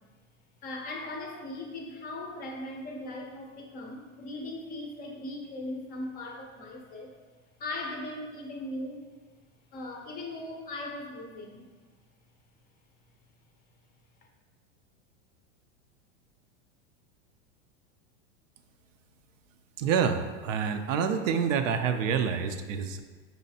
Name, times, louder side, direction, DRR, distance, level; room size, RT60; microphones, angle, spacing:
voice 1, 0.6-7.1 7.6-9.0 9.7-11.7, left 2 dB, 25° left, 1 dB, 0.4 m, -38 dB
voice 2, 19.8-23.0, right 7 dB, 90° right, 8 dB, 0.5 m, -27 dB
5.5 x 3.1 x 2.7 m, 1.4 s
supercardioid pair, 140°, 37 cm